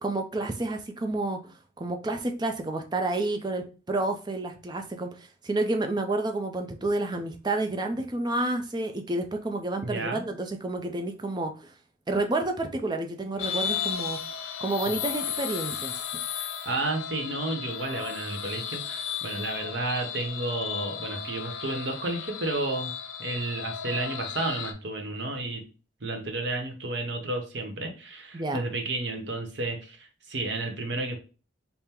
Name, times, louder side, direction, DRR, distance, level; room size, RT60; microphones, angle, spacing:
voice 1, 0.0-11.7 12.1-14.2 14.6-15.9 28.3-28.6, right 2 dB, 20° right, 0.4 m, -30 dB
voice 2, 9.8-10.2 16.3-22.9 23.2-25.6 26.0-31.2, right 2 dB, 60° right, 0.8 m, -32 dB
sound 1, 13.4-24.7, left 8 dB, 80° left, 0.4 m, -34 dB
3.6 x 2.0 x 4.2 m
head